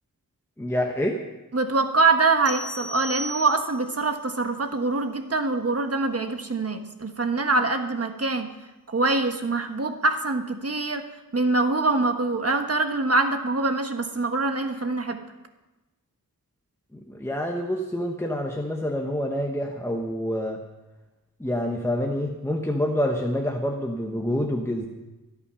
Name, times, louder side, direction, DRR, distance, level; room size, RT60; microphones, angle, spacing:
voice 1, 0.6-1.2 16.9-20.6 21.4-24.9, equal, 10° left, 1 dB, 1.1 m, -27 dB
voice 2, 1.5-8.5 8.9-11.0 11.3-15.2, right 3 dB, 40° right, 6 dB, 1.4 m, -24 dB
sound 1, 2.5-4.0, equal, 60° left, 2.2 m, -35 dB
23.5 x 8.8 x 5.6 m, 1.1 s
wide cardioid pair, 110°, 35 cm